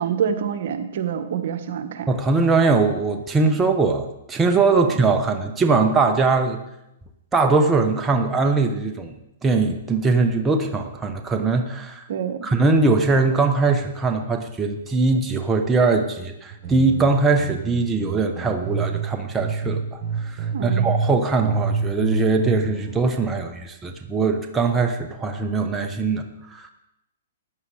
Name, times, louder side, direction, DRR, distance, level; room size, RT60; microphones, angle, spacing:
voice 1, 0.0-2.1 12.1-12.5 20.5-21.0, right 7 dB, 60° right, 7 dB, 1.3 m, -26 dB
voice 2, 2.1-6.6 7.3-9.1 9.4-12.0 12.4-26.7, right 3 dB, 10° right, 4 dB, 1.0 m, -21 dB
sound 1, 16.5-19.1 19.4-21.1 21.4-23.0, right 5 dB, 35° right, 4.6 m, -26 dB
14.0 x 9.7 x 4.9 m, 0.87 s
hypercardioid pair, 140°, 0 cm